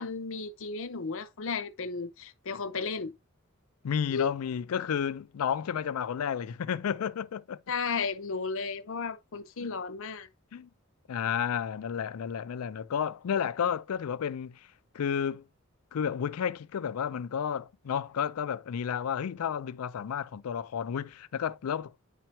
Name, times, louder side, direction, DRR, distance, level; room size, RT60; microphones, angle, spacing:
voice 1, 0.0-3.1 4.1-4.3 7.7-10.3, left 5 dB, 65° left, 0.7 m, -34 dB
voice 2, 3.8-7.6 10.5-10.7 11.1-14.7 14.9-15.5 15.9-22.0, left 8 dB, 85° left, 0.4 m, -31 dB
9.7 x 4.5 x 2.9 m
head